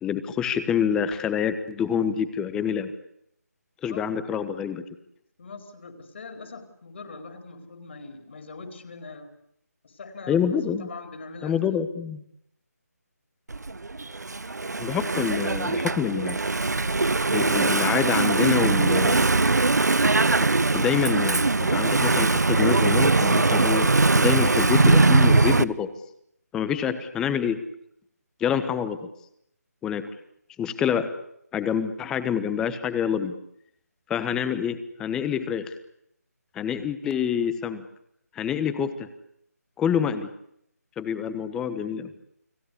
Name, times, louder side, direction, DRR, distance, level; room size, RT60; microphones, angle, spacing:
voice 1, 0.0-2.9 3.8-4.8 10.3-10.9 11.4-12.2 14.8-16.4 17.3-19.3 20.7-25.9 26.5-27.6 28.4-29.0 29.8-30.1 30.6-31.1 31.5-33.3 34.1-35.7 36.5-37.8 38.3-39.1 39.8-40.3 41.0-42.1, left 8 dB, 5° left, 12 dB, 1.2 m, -27 dB
voice 2, 5.4-9.3 9.8-11.6, left 3 dB, 45° left, 6 dB, 4.5 m, -42 dB
Engine / Mechanisms, 13.5-25.6, right 3 dB, 80° right, 1.1 m, -21 dB
30.0 x 20.5 x 8.4 m, 0.73 s
figure-of-eight pair, 160°, 9 cm